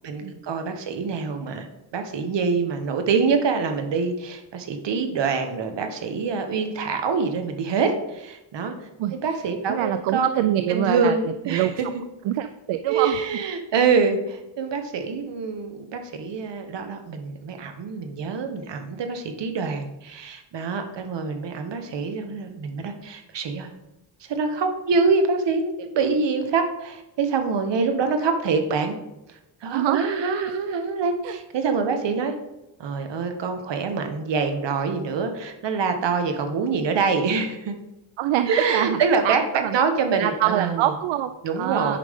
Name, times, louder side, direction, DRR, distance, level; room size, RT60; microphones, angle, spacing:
voice 1, 0.0-1.7 1.9-8.7 9.1-10.4 10.7-11.9 12.9-23.7 24.2-29.0 29.3-32.3 32.8-37.8 38.5-40.9 41.4-42.0, right 5 dB, 60° right, 6 dB, 1.2 m, -25 dB
voice 2, 9.7-11.2 11.5-11.7 12.2-13.2 29.7-30.0 30.5-30.6 31.2-31.4 38.2-39.0 39.2-41.3 41.6-42.0, right 12 dB, 80° right, 10 dB, 0.5 m, -25 dB
8.9 x 5.2 x 3.6 m, 0.93 s
cardioid pair, 110°, 47 cm